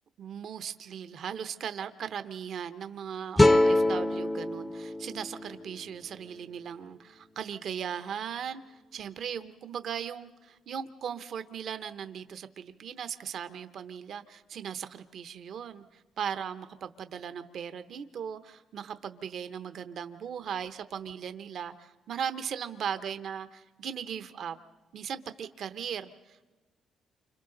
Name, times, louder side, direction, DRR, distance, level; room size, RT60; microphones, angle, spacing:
voice 1, 0.2-24.6 24.9-26.4, right 8 dB, 65° right, 10 dB, 0.8 m, -38 dB
sound 1, 3.4-6.6, left 1 dB, 15° left, 0.7 m, -25 dB
29.0 x 26.5 x 3.9 m, 1.2 s
cardioid pair, 90°, 0 cm